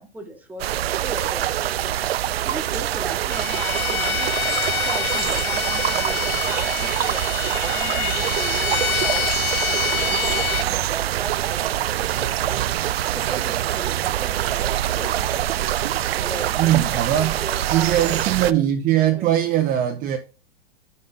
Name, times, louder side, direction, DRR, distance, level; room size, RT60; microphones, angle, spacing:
voice 1, 0.0-1.9 2.4-7.2 7.6-9.3 9.6-12.7 13.1-15.6 16.2-18.6 19.2-19.4, right 2 dB, 5° right, 1.3 m, -37 dB
sound 1, 0.6-18.5, right 12 dB, 80° right, 0.5 m, -24 dB
Bowed string instrument, 3.3-10.7, left 13 dB, 30° left, 0.6 m, -27 dB
voice 2, 16.6-17.4 17.7-20.2, right 12 dB, 30° right, 0.8 m, -20 dB
5.7 x 5.3 x 5.4 m
hypercardioid pair, 120°, 30 cm